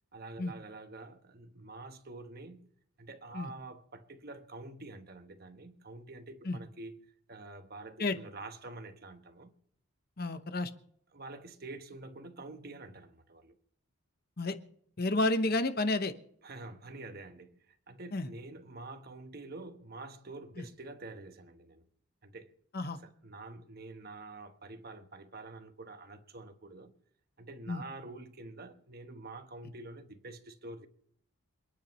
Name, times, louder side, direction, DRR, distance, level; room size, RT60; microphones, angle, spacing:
voice 1, 0.1-2.7 3.0-9.5 11.1-13.5 16.4-21.8 22.2-22.6 23.0-26.9 27.4-30.9, right 2 dB, 45° right, 1.1 m, -47 dB
voice 2, 10.2-10.7 14.4-14.6 15.0-16.1 18.1-18.3 22.7-23.0 27.7-27.8, left 2 dB, 45° left, 0.9 m, -30 dB
28.0 x 10.0 x 3.1 m
head